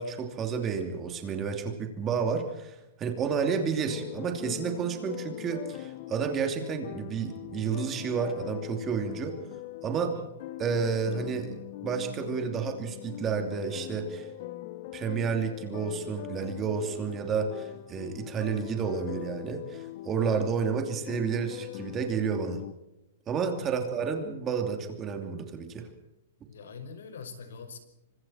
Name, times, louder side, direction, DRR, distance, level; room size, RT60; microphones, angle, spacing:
voice 1, 0.0-9.4 9.8-10.1 10.6-14.3 14.9-22.6 23.3-25.9, right 6 dB, 15° right, 5 dB, 2.8 m, -31 dB
sound 1, 3.9-22.7, left 15 dB, 35° left, 1.2 m, -42 dB
voice 2, 10.0-10.3 23.6-24.0 26.5-27.8, left 5 dB, 75° left, 8 dB, 5.6 m, -44 dB
30.0 x 25.5 x 4.4 m, 0.94 s
hypercardioid pair, 170°, 0 cm